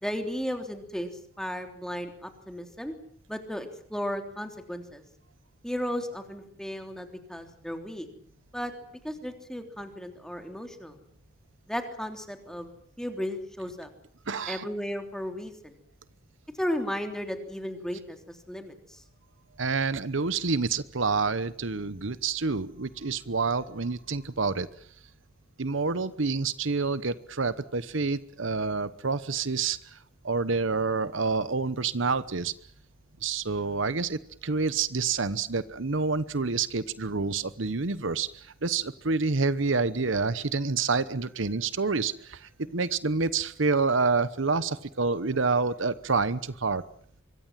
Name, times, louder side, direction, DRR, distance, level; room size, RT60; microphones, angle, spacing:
voice 1, 0.0-2.9 3.3-5.0 5.6-8.1 8.5-8.7 9.0-11.0 11.7-13.9 14.5-15.7 16.6-19.0, equal, 5° left, 5 dB, 3.3 m, -35 dB
voice 2, 14.3-14.7 19.6-24.7 25.6-30.0 30.2-32.5 33.2-46.8, right 4 dB, 65° right, 15 dB, 1.0 m, -28 dB
25.5 x 23.5 x 7.5 m, 0.62 s
head